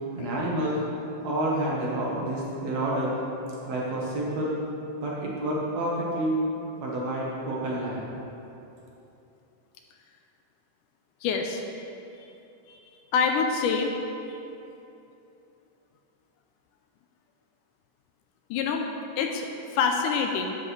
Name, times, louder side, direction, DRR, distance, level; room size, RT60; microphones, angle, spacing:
voice 1, 0.2-0.8 1.2-3.2 3.7-4.6 5.0-6.4 6.8-8.1, right 1 dB, 60° right, -5 dB, 2.1 m, -29 dB
voice 2, 11.2-11.6 12.7-12.8 13.1-14.0 14.3-14.4 18.5-18.9 19.2-20.6, left 5 dB, 80° left, 3 dB, 2.0 m, -26 dB
11.0 x 7.4 x 3.2 m, 2.9 s
omnidirectional pair, 3.8 m